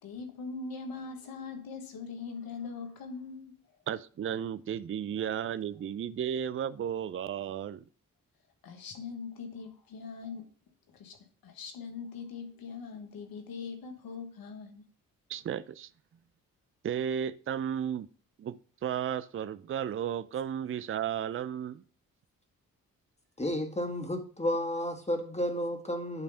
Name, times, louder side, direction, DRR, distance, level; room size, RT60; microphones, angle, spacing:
voice 1, 0.0-3.6 8.6-10.5 10.9-11.2 11.4-14.8, left 5 dB, 85° left, 1.4 m, -41 dB
voice 2, 3.9-7.8 15.3-15.9 16.8-18.1 18.4-21.8, right 9 dB, 40° right, 0.5 m, -34 dB
voice 3, 23.4-26.2, equal, 20° left, 1.8 m, -32 dB
9.0 x 3.3 x 5.5 m
supercardioid pair, 50°, 35 cm